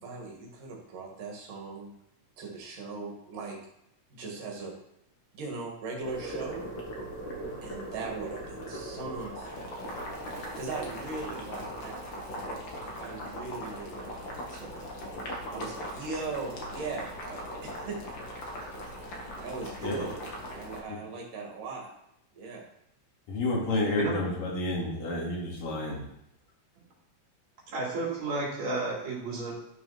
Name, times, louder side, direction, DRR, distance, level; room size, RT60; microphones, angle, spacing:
voice 1, 0.0-1.9 2.4-3.6 4.1-4.7 5.3-6.7 7.6-9.7 10.6-12.1 13.0-14.9 15.5-18.0 18.3-18.4 19.4-20.2 20.5-21.9 22.3-22.6, right 3 dB, 70° right, 3.8 m, -39 dB
Boiling, 6.0-20.8, equal, 40° left, 2.2 m, -39 dB
voice 2, 23.3-26.0, left 2 dB, 70° left, 4.3 m, -30 dB
voice 3, 27.7-29.6, right 3 dB, 55° right, 4.4 m, -32 dB
13.0 x 6.2 x 5.9 m
omnidirectional pair, 3.9 m